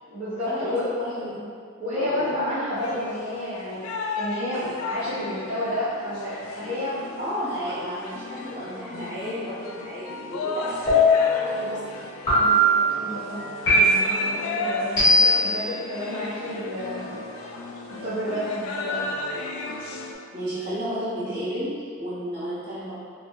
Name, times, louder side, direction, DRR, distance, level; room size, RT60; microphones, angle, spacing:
voice 1, 0.1-0.8 1.8-3.8 4.1-7.0 12.4-17.1 18.0-19.1, left 1 dB, 35° right, -15 dB, 0.7 m, -30 dB
voice 2, 1.0-1.3 1.9-2.3 7.2-11.8 20.3-22.9, equal, 50° right, -11 dB, 1.2 m, -32 dB
sound 1, 2.8-20.1, left 3 dB, 85° left, 0.3 m, -35 dB
sound 2, 10.9-11.4 12.3-12.8 13.7-14.2 15.0-15.5, left 1 dB, 20° left, 1.5 m, -18 dB
3.0 x 2.6 x 2.2 m, 2.2 s
head